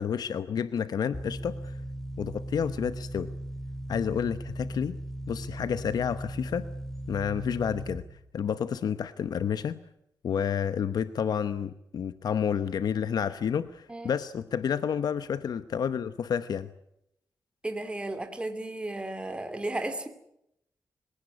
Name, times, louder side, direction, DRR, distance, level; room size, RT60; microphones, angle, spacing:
voice 1, 0.0-1.7 2.2-3.3 3.9-5.0 5.3-6.6 7.1-8.0 8.3-9.8 10.2-16.7, left 7 dB, 80° left, 12 dB, 0.9 m, -30 dB
sound 1, 1.1-8.0, right 1 dB, 5° left, 4.9 m, -38 dB
voice 2, 17.6-20.1, right 2 dB, 15° right, 7 dB, 2.6 m, -34 dB
26.5 x 17.0 x 9.6 m, 0.80 s
wide cardioid pair, 115°, 7 cm